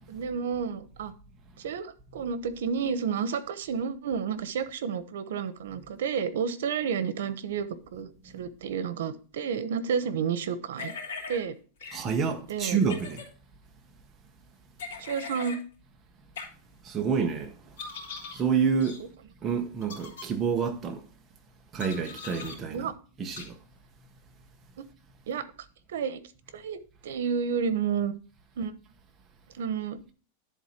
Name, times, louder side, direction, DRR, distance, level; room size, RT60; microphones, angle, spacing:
voice 1, 0.1-1.1 1.6-10.9 11.3-11.5 11.8-12.0 12.5-12.9 15.0-15.6 22.7-22.9 24.8-24.9 25.3-25.4 25.9-26.2 26.5-28.1 28.6-28.7 29.6-30.0, right 6 dB, 85° right, 0.9 m, -31 dB
sound 1, 10.8-11.4 11.8-12.0 12.8-13.3 14.8-15.6 16.4-16.5 17.8-18.4 18.8-19.0 19.8-20.3 21.8-22.6 23.4-23.5, left 5 dB, 85° left, 3.1 m, -40 dB
voice 2, 11.9-13.2 16.8-17.5 18.3-19.0 19.4-21.0 21.7-22.9 23.2-23.6, right 6 dB, 15° right, 1.0 m, -28 dB
10.5 x 4.0 x 5.9 m
supercardioid pair, 175°, 0 cm